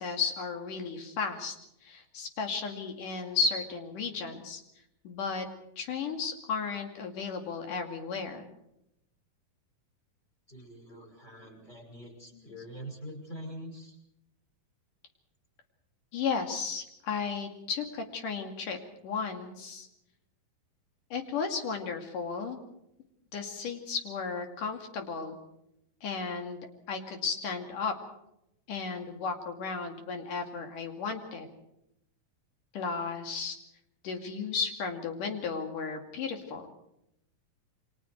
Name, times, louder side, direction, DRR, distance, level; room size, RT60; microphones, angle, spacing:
voice 1, 0.0-1.6 1.8-4.6 5.0-5.5 5.8-8.5 12.3-12.6 16.1-18.8 19.0-19.9 21.1-22.6 23.3-25.4 26.0-27.9 28.7-31.5 32.7-33.6 34.0-36.7, left 5 dB, 70° left, 4 dB, 3.9 m, -34 dB
voice 2, 10.5-14.0, equal, 15° left, 3 dB, 5.6 m, -44 dB
29.0 x 24.0 x 4.6 m, 0.82 s
omnidirectional pair, 4.0 m